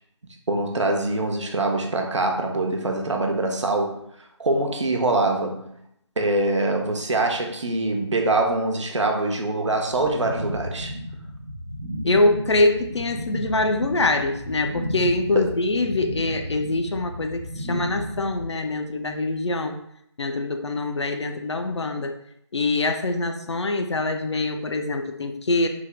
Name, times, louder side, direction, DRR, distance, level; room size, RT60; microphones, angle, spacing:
voice 1, 0.5-5.6 6.2-10.9 15.3-15.5, right 2 dB, 75° right, 2 dB, 0.6 m, -24 dB
sound 1, 9.9-18.4, equal, 10° right, 0.4 m, -33 dB
voice 2, 12.0-19.8 20.2-22.2 22.5-25.7, left 2 dB, 65° left, 6 dB, 0.4 m, -24 dB
3.4 x 2.2 x 3.3 m, 0.73 s
figure-of-eight pair, 165°, 15 cm